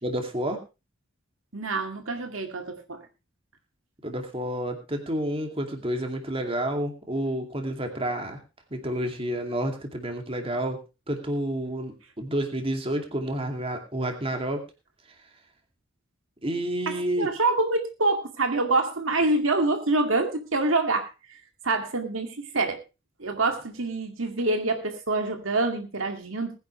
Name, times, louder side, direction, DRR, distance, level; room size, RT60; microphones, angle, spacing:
voice 1, 0.0-0.6 4.0-8.4 8.7-10.8 11.1-14.6 16.4-17.3, right 1 dB, 30° right, 4 dB, 2.5 m, -29 dB
voice 2, 1.5-3.0 16.9-21.1 21.6-22.8 23.2-26.5, right 2 dB, 85° right, 5 dB, 2.2 m, -26 dB
20.0 x 10.5 x 3.2 m, 0.28 s
head